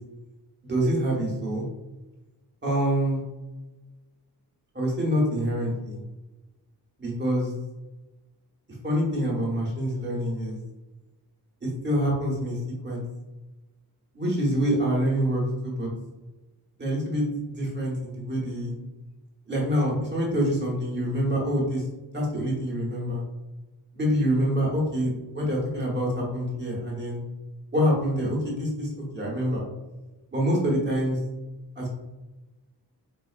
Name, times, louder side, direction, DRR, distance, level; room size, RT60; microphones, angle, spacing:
voice 1, 0.6-1.7 2.6-3.2 4.7-6.0 7.0-7.5 8.8-10.6 11.6-12.6 12.8-13.0 14.1-15.9 16.8-18.7 19.5-21.8 22.1-23.2 23.9-27.2 27.7-29.6 30.3-31.2 31.8-31.9, equal, 25° right, -3 dB, 1.1 m, -26 dB
4.2 x 3.8 x 2.4 m, 1.1 s
wide cardioid pair, 170°, 39 cm